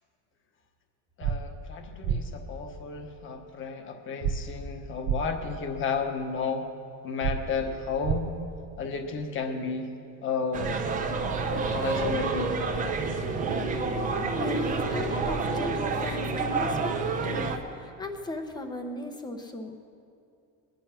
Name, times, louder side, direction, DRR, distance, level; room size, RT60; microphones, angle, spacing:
voice 1, 1.2-6.7 7.0-8.3 8.8-9.9 10.2-10.7 11.5-12.5, left 5 dB, 30° left, 5 dB, 1.3 m, -32 dB
sound 1, 1.2-1.4 2.0-2.2 4.2-4.3 5.0-5.2 7.2-7.3 8.0-8.2, right 8 dB, 60° right, 0.9 m, -26 dB
sound 2, 10.5-17.6, right 4 dB, 20° right, 0.8 m, -28 dB
voice 2, 14.0-17.0 17.2-19.9, left 2 dB, 10° left, 5 dB, 0.9 m, -37 dB
21.0 x 10.5 x 5.8 m, 2.5 s
cardioid pair, 175°, 39 cm